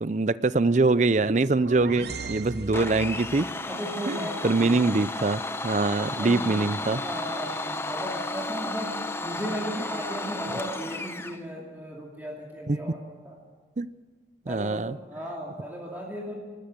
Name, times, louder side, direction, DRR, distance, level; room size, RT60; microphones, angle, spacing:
voice 1, 0.0-3.5 4.1-4.2 4.4-7.0 12.7-12.8 13.8-13.9 14.5-15.0, right 3 dB, 40° right, 16 dB, 0.5 m, -24 dB
sound 1, 1.2-3.5, right 4 dB, 60° right, 0.8 m, -39 dB
voice 2, 1.8-2.6 3.7-4.9 6.2-6.6 6.9-8.9 9.2-13.4 14.5-16.3, equal, 10° right, -3 dB, 2.5 m, -36 dB
Domestic sounds home sounds, 2.7-11.4, left 2 dB, 15° left, 0.8 m, -33 dB
26.0 x 13.0 x 7.8 m, 1.5 s
head